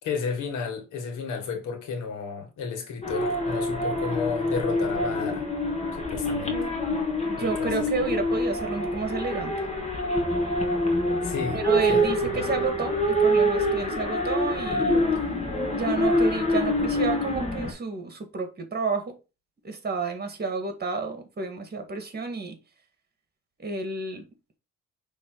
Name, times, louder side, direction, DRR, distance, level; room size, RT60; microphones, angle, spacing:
voice 1, 0.0-5.5 5.9-6.7 7.3-7.9 11.2-12.0 12.3-12.4, left 5 dB, 85° left, 2.0 m, -32 dB
sound 1, 3.0-17.7, equal, 20° left, 1.9 m, -26 dB
voice 2, 7.3-9.5 11.5-15.0 15.7-19.2 19.6-22.6 23.6-24.3, right 4 dB, 35° right, 1.9 m, -31 dB
6.2 x 3.5 x 4.6 m
cardioid pair, 90°, 30 cm